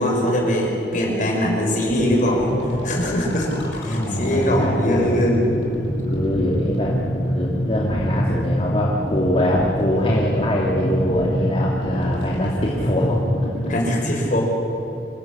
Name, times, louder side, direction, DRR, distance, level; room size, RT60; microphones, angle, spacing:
voice 1, 0.0-2.6 2.8-5.4 13.7-14.4, equal, 50° left, 0 dB, 6.1 m, -21 dB
sound 1, 1.9-13.7, equal, 80° left, 6.5 m, -26 dB
voice 2, 3.8-5.2 6.1-7.0 7.3-13.2, left 1 dB, 35° left, -3 dB, 2.5 m, -23 dB
26.5 x 17.5 x 8.8 m, 2.8 s
head